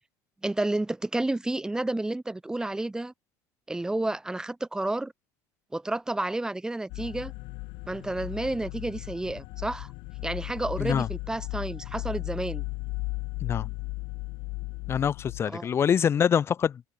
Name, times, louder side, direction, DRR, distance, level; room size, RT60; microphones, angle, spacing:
voice 1, 0.4-3.1 3.7-5.1 5.7-7.3 7.9-9.9 10.2-12.6 15.5-15.7, right 2 dB, 5° right, 1.0 m, -30 dB
sound 1, 6.9-15.4, left 26 dB, 65° left, 0.9 m, -36 dB
voice 2, 10.8-11.1 13.4-13.7 14.9-16.8, left 8 dB, 30° left, 0.4 m, -25 dB
open air
supercardioid pair, 110°, 9 cm